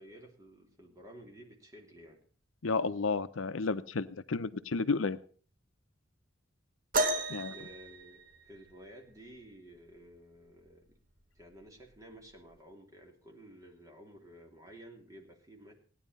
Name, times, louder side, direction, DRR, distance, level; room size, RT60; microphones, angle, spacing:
voice 1, 0.0-2.2 7.3-11.0 11.3-15.7, equal, 15° right, 1 dB, 2.9 m, -53 dB
voice 2, 2.6-5.2 7.3-7.5, left 4 dB, 90° left, 13 dB, 0.8 m, -32 dB
sound 1, 6.9-8.8 10.5-10.6 11.4-11.6 12.5-12.6, right 2 dB, 45° right, 1.3 m, -33 dB
16.5 x 10.5 x 5.5 m, 0.42 s
head